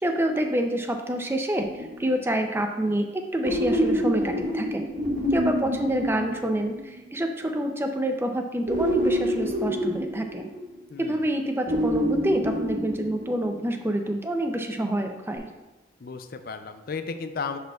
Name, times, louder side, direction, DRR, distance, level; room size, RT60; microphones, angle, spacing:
voice 1, 0.0-4.9 5.3-10.5 11.0-15.5, right 1 dB, 10° right, 4 dB, 0.5 m, -27 dB
sound 1, 1.6-2.3 3.4-7.0 8.7-10.9 11.7-13.7 15.4-15.5, equal, 45° right, 1.2 m, -27 dB
voice 2, 10.9-11.3 16.0-17.6, left 5 dB, 50° left, 8 dB, 0.4 m, -34 dB
10.0 x 5.1 x 2.3 m, 1.1 s
head